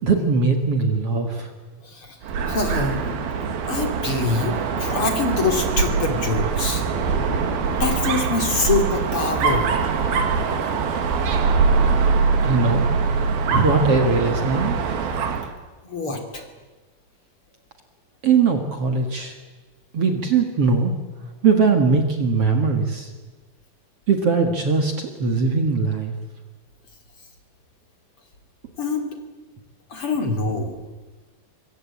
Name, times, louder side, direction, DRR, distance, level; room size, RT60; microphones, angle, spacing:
voice 1, 0.0-1.5 12.4-12.9 13.5-14.8 18.2-19.3 19.9-20.9 21.4-23.1 24.1-26.1, right 4 dB, 45° right, 5 dB, 2.5 m, -20 dB
voice 2, 1.8-2.2 2.5-3.0 3.7-6.8 7.6-9.7 15.8-16.5 28.8-29.1 29.9-30.8, left 3 dB, 40° left, 5 dB, 3.4 m, -25 dB
Dog, 2.2-15.5, right 5 dB, 85° right, 3.9 m, -23 dB
25.5 x 23.5 x 8.5 m, 1.3 s
omnidirectional pair, 4.2 m